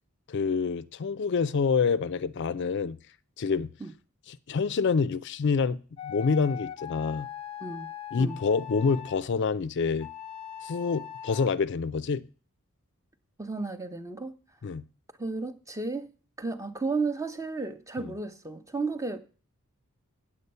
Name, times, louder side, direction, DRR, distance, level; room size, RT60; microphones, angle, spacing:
voice 1, 0.3-3.0 3.4-3.7 4.3-7.3 8.1-10.1 10.6-12.2 14.6-14.8 18.0-18.1, left 5 dB, 50° left, 0.4 m, -27 dB
sound 1, 6.0-9.2 10.0-11.5, left 10 dB, 25° left, 0.8 m, -40 dB
voice 2, 13.4-14.3 15.2-16.1 16.4-19.2, right 3 dB, 15° right, 0.9 m, -33 dB
8.7 x 8.2 x 5.5 m
head